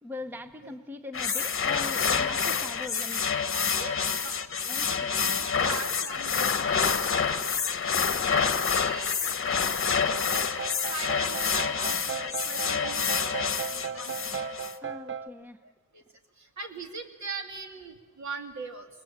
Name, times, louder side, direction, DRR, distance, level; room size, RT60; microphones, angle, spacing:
voice 1, 0.0-3.3 4.7-5.2 14.8-15.6, left 2 dB, 5° right, 8 dB, 0.7 m, -41 dB
sound 1, 1.1-14.7, left 6 dB, 40° left, 1.0 m, -27 dB
voice 2, 3.5-4.4 4.8-7.5 8.2-9.3 10.3-10.4 10.9-14.5 15.6-16.0 16.4-18.9, right 4 dB, 60° right, 3 dB, 2.6 m, -41 dB
sound 2, 9.9-15.3, right 7 dB, 40° right, 0.8 m, -37 dB
27.5 x 21.0 x 7.3 m, 1.3 s
wide cardioid pair, 180°, 31 cm